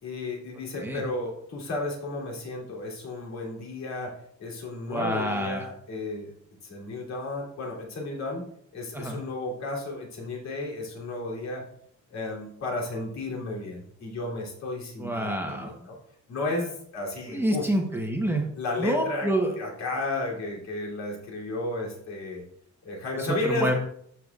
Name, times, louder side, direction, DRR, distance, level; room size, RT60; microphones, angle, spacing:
voice 1, 0.0-6.3 6.6-8.4 8.7-11.6 12.1-16.0 16.3-17.7 18.5-19.3 19.6-22.4 22.8-23.7, left 2 dB, 65° left, -3 dB, 3.1 m, -33 dB
voice 2, 4.9-5.7 8.9-9.2 15.0-15.7 17.3-18.4 18.8-19.5 23.4-23.7, right 1 dB, 10° right, 1 dB, 1.0 m, -27 dB
13.0 x 6.9 x 2.4 m, 0.69 s
cardioid pair, 160°, 30 cm